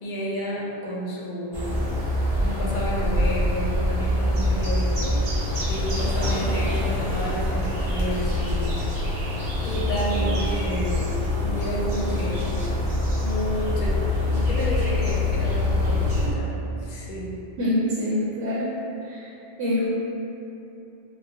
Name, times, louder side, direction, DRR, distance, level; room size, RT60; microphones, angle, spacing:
voice 1, 0.0-2.1 2.4-5.2 5.7-8.9 9.6-12.5 13.2-16.5 16.8-17.3, equal, 55° left, -5 dB, 0.6 m, -31 dB
sound 1, 1.5-16.3, left 1 dB, 60° right, 0.8 m, -25 dB
sound 2, 5.4-13.0, equal, 40° right, 1.0 m, -39 dB
voice 2, 17.6-18.7 19.1-19.3 19.6-19.9, left 1 dB, 85° right, -8 dB, 0.9 m, -25 dB
3.9 x 2.0 x 2.7 m, 3.0 s
omnidirectional pair, 1.1 m